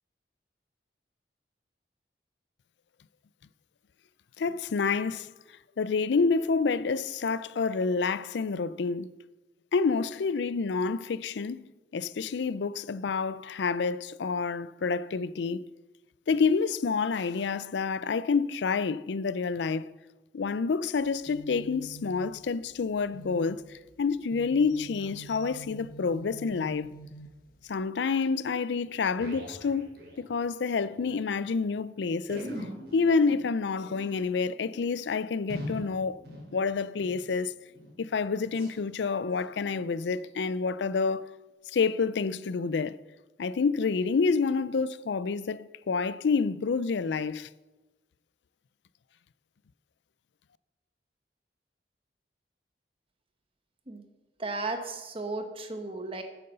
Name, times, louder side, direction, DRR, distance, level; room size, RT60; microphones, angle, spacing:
voice 1, 4.4-5.3 5.8-9.1 9.7-11.7 11.9-15.7 16.3-19.9 20.3-23.6 24.0-26.9 27.7-32.5 32.9-36.2 36.5-37.5 38.0-41.3 41.7-43.0 43.4-47.5, left 5 dB, 80° left, 0.4 m, -28 dB
sound 1, 21.0-27.9, right 2 dB, 50° left, 1.1 m, -48 dB
sound 2, 28.4-28.5 28.8-30.9 31.2-31.3 31.5-31.6 32.2-37.3 37.7-38.0 38.5-38.8 39.2-39.5 40.0-40.2 40.8-40.9, equal, 65° right, 4.3 m, -43 dB
voice 2, 54.4-56.2, right 3 dB, 30° right, 1.3 m, -35 dB
9.4 x 9.3 x 6.7 m
head